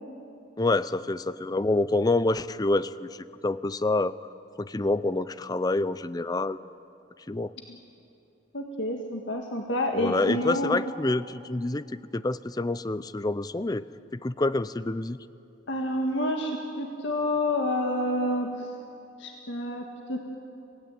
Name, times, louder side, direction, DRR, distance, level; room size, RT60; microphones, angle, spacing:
voice 1, 0.6-4.2 4.6-6.6 7.3-7.5 9.9-11.8 12.1-13.8 14.1-15.2, left 2 dB, 20° left, 15 dB, 0.5 m, -27 dB
voice 2, 8.5-10.9 15.7-18.7 19.2-20.4, left 1 dB, 70° left, 2 dB, 1.8 m, -29 dB
27.5 x 17.5 x 9.1 m, 2.8 s
head